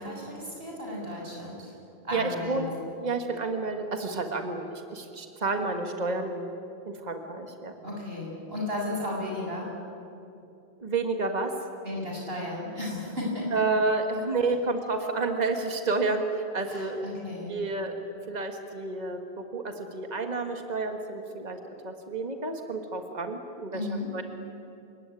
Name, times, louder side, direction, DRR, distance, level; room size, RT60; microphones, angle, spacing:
voice 1, 0.0-1.7 2.0-2.9 7.8-9.8 11.8-13.6 16.6-17.6 23.7-24.1, left 1 dB, 65° right, -2 dB, 7.3 m, -34 dB
voice 2, 2.1-2.7 3.0-6.5 6.9-7.7 10.8-11.5 13.5-16.2 16.5-17.1 17.5-17.9 18.3-21.6 21.8-23.8 24.1-24.2, right 3 dB, 40° right, 5 dB, 1.9 m, -30 dB
29.5 x 17.0 x 9.9 m, 2.7 s
omnidirectional pair, 1.1 m